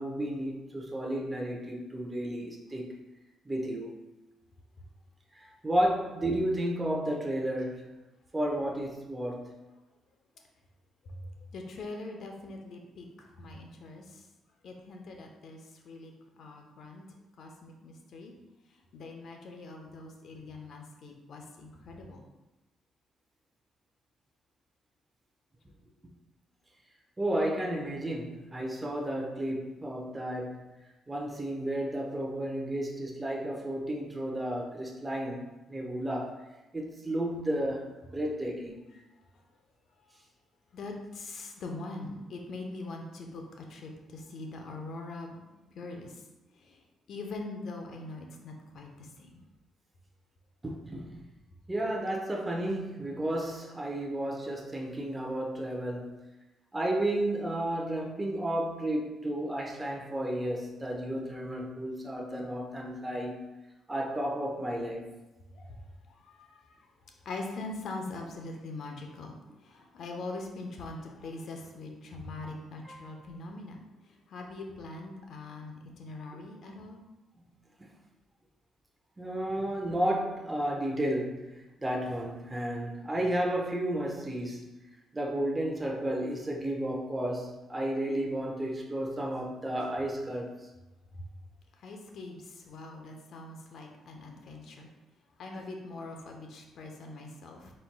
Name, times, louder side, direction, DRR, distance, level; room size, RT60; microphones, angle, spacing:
voice 1, 0.0-2.9 3.4-3.9 5.3-8.0 8.3-9.5 27.2-30.7 31.1-35.4 35.7-36.4 36.7-38.7 50.6-51.2 51.7-56.2 56.7-63.4 63.9-65.1 72.8-73.0 77.8-77.9 79.2-84.7 85.1-90.5, right 1 dB, 15° right, -1 dB, 0.8 m, -32 dB
voice 2, 11.0-14.3 14.6-17.1 17.4-18.3 18.7-22.2 38.9-39.0 40.7-45.4 45.7-46.2 46.5-46.8 47.1-49.4 65.5-66.9 67.2-73.8 74.0-77.0 91.2-91.3 91.8-94.9 95.4-97.7, left 2 dB, 65° left, 2 dB, 0.7 m, -42 dB
4.3 x 4.3 x 2.2 m, 1.0 s
cardioid pair, 90°, 0 cm